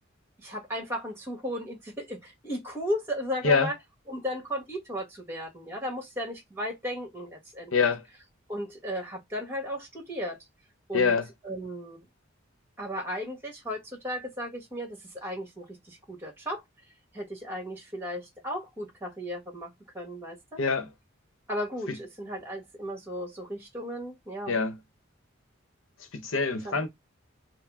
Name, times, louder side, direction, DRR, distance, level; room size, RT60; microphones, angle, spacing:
voice 1, 0.4-3.7 4.1-7.7 8.5-10.4 10.9-11.1 11.4-12.0 12.8-16.6 17.1-20.6 21.5-24.6 26.6-26.8, equal, 10° right, 1.4 m, -35 dB
voice 2, 7.7-8.0 10.9-11.3 20.6-20.9 21.9-22.0 24.5-24.8 26.1-26.9, left 4 dB, 80° left, 0.9 m, -25 dB
4.7 x 2.1 x 3.5 m
head